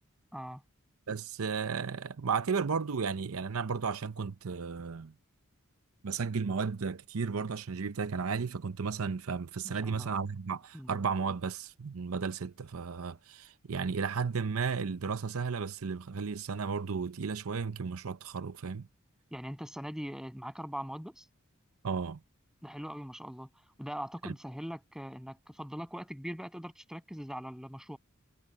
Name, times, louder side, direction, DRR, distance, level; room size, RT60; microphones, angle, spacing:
voice 1, 0.3-0.6 9.6-10.1 10.7-10.9 19.3-21.3 22.6-23.5 23.8-28.0, equal, 5° right, 7.3 m, -41 dB
voice 2, 1.1-5.1 6.0-18.9 21.8-22.2 24.2-24.3, right 5 dB, 85° right, 0.6 m, -34 dB
head